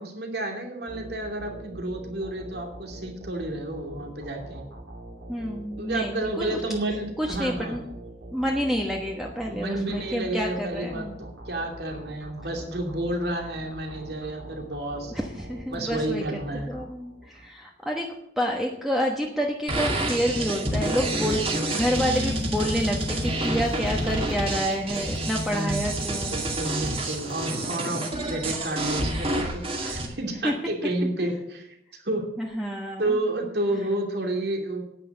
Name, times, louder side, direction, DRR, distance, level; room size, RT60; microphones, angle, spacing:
voice 1, 0.0-4.6 5.8-7.8 9.5-15.1 15.7-16.7 25.5-25.9 26.3-31.8 32.0-32.3 33.0-34.8, right 1 dB, 60° right, 2 dB, 2.7 m, -30 dB
sound 1, 0.9-17.5, right 1 dB, 85° right, 2.9 m, -43 dB
voice 2, 5.3-6.6 7.2-7.8 8.3-11.1 15.1-18.1 18.4-21.5 21.7-26.4 27.0-27.2 28.4-28.6 30.4-30.5 32.4-33.2 33.8-33.9, equal, ahead, -1 dB, 1.1 m, -28 dB
sound 2, 19.7-30.0, right 1 dB, 30° right, 2.2 m, -28 dB
sound 3, 20.9-27.7, left 1 dB, 80° left, 2.5 m, -47 dB
9.9 x 9.3 x 6.6 m, 0.79 s
head